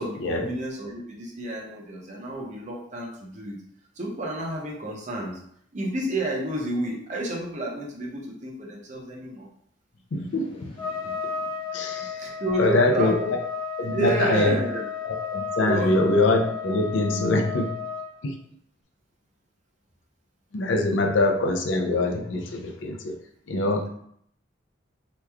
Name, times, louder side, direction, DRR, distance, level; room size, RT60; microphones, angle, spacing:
voice 1, 0.0-3.6 4.0-5.4 5.7-9.4 12.2-13.3 13.8-14.9 15.6-16.0, right 1 dB, 35° right, -2 dB, 0.7 m, -30 dB
voice 2, 10.1-10.7 11.7-12.3 12.6-13.1 13.8-14.6 15.0-17.7 18.2-18.3 20.5-23.1 23.5-23.9, left 2 dB, 70° left, 2 dB, 0.5 m, -24 dB
Trumpet, 10.8-18.1, left 6 dB, 25° left, 0.8 m, -33 dB
3.0 x 2.3 x 3.3 m, 0.67 s
head